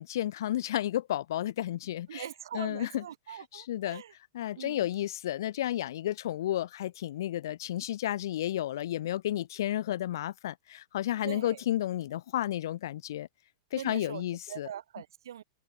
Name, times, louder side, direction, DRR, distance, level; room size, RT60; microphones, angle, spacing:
voice 1, 0.0-2.2 2.5-4.0 4.3-13.3 13.7-14.7, left 12 dB, 70° left, 1.1 m, -32 dB
voice 2, 2.1-4.1 4.6-4.9 11.2-11.6 13.8-15.4, right 10 dB, 85° right, 5.9 m, -42 dB
supercardioid pair, 155°, 2 cm